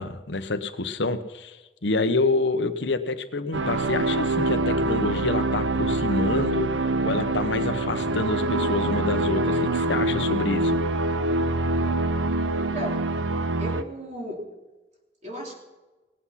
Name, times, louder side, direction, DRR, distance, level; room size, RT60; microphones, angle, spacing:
voice 1, 0.0-6.7 7.0-10.8, left 3 dB, 70° left, 10 dB, 1.0 m, -27 dB
sound 1, 3.5-13.8, right 2 dB, 80° right, 0.7 m, -25 dB
voice 2, 12.5-13.1 13.6-14.4 15.2-15.6, equal, 40° right, 0 dB, 3.1 m, -35 dB
19.0 x 8.4 x 5.8 m, 1.2 s
head